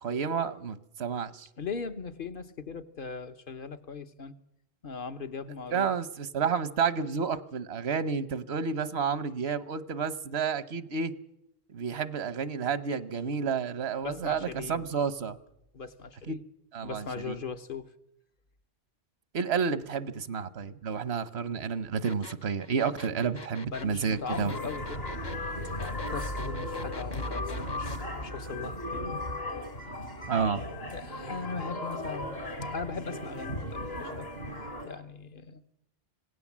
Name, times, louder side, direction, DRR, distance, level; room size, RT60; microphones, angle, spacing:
voice 1, 0.0-1.5 5.7-11.1 11.7-15.4 16.3-16.4 16.7-17.3 19.3-24.5 30.3-30.6, right 6 dB, 85° right, 15 dB, 1.3 m, -30 dB
voice 2, 1.6-4.3 4.8-5.9 14.0-14.9 15.7-16.4 16.8-17.9 23.7-25.0 25.8-29.2 30.9-32.4 32.7-34.3 34.8-35.6, left 5 dB, 60° left, 8 dB, 1.2 m, -39 dB
sound 1, 22.0-28.0, left 4 dB, 25° left, 0.8 m, -45 dB
sound 2, 24.3-34.9, left 1 dB, 75° left, 4.1 m, -36 dB
26.0 x 17.5 x 7.4 m, 0.83 s
omnidirectional pair, 1.0 m